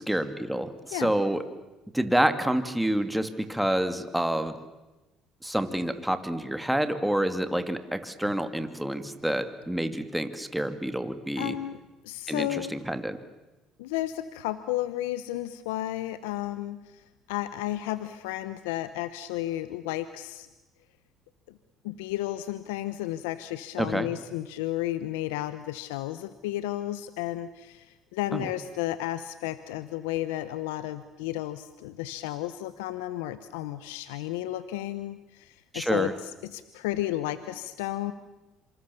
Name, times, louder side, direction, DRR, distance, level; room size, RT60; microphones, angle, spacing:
voice 1, 0.0-1.4 1.9-4.6 5.4-11.6 12.3-13.2 23.8-24.1 28.3-28.5 35.7-36.1, right 1 dB, 5° right, 9 dB, 2.5 m, -28 dB
voice 2, 11.4-11.8 12.0-12.8 13.8-20.5 21.5-21.6 21.8-38.1, left 14 dB, 90° left, 13 dB, 1.0 m, -33 dB
26.5 x 26.5 x 7.1 m, 1.1 s
supercardioid pair, 75°, 0 cm